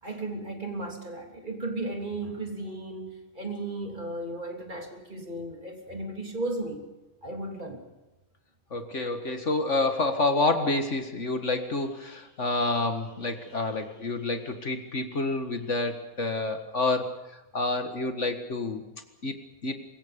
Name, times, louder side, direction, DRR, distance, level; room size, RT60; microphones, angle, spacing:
voice 1, 0.0-6.8 7.2-7.8, right 2 dB, 35° right, 2 dB, 3.5 m, -35 dB
voice 2, 8.7-17.1 17.5-18.8 19.2-19.3 19.6-19.8, left 2 dB, 55° left, 7 dB, 2.0 m, -28 dB
24.5 x 22.0 x 5.3 m, 1.0 s
omnidirectional pair, 1.5 m